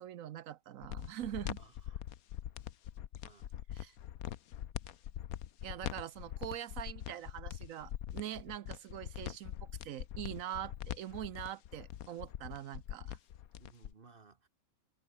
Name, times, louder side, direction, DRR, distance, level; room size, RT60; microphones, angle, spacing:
voice 1, 0.0-1.6 3.7-4.0 5.6-13.2, right 11 dB, 75° right, 1.1 m, -43 dB
sound 1, 0.8-13.9, left 11 dB, 85° left, 1.3 m, -43 dB
voice 2, 1.6-2.0 3.2-3.5 13.6-14.5, right 4 dB, 40° right, 1.5 m, -60 dB
omnidirectional pair, 1.5 m